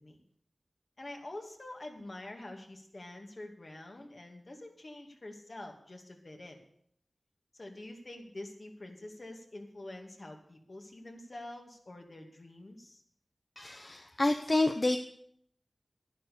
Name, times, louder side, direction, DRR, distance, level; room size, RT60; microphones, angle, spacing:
voice 1, 1.0-6.6 7.5-13.0, left 1 dB, 55° left, 2 dB, 2.6 m, -46 dB
voice 2, 13.6-15.0, left 2 dB, 40° left, 7 dB, 0.9 m, -28 dB
11.0 x 11.0 x 6.9 m, 0.66 s
wide cardioid pair, 50°, 0 cm